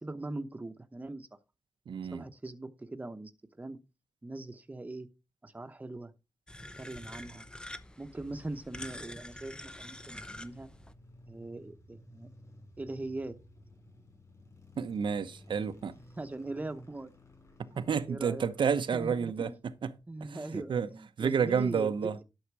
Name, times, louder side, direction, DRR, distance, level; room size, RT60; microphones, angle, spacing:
voice 1, 0.0-1.3 2.1-3.3 3.6-3.8 4.2-5.1 5.4-6.1 6.8-7.5 8.0-10.7 11.3-12.3 12.8-13.4 16.2-17.1 18.1-18.5 18.9-19.6 20.1-22.0, right 2 dB, 20° right, 0.9 m, -41 dB
voice 2, 1.9-2.2 14.8-15.9 17.8-19.5 19.8-19.9 20.2-20.9 21.2-22.2, right 6 dB, 90° right, 0.9 m, -30 dB
sound 1, 6.5-10.9, left 1 dB, 10° left, 0.6 m, -46 dB
sound 2, 8.1-20.4, left 1 dB, 40° left, 7.1 m, -56 dB
11.5 x 6.5 x 4.7 m
wide cardioid pair, 130°, 8 cm